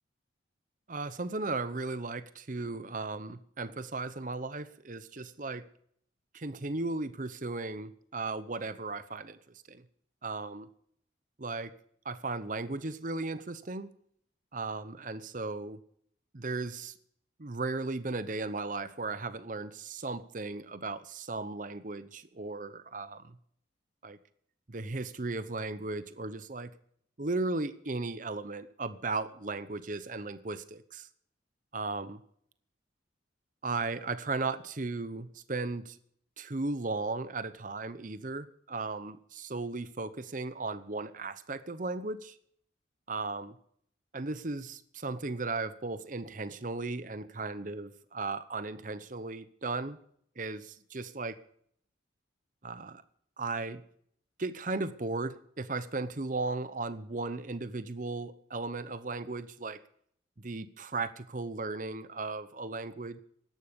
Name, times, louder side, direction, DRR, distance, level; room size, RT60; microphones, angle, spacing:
voice 1, 0.9-5.6 6.3-9.8 10.2-10.7 11.4-11.7 12.0-13.9 14.5-15.8 16.3-16.9 17.4-23.4 24.0-24.2 24.7-26.7 27.2-31.1 31.7-32.2 33.6-36.0 36.4-42.4 43.1-43.6 44.1-50.0 50.4-51.4 52.6-53.0 53.4-53.8 54.4-59.8 60.4-63.2, right 3 dB, 45° right, 13 dB, 0.9 m, -36 dB
16.5 x 12.0 x 5.3 m, 0.66 s
head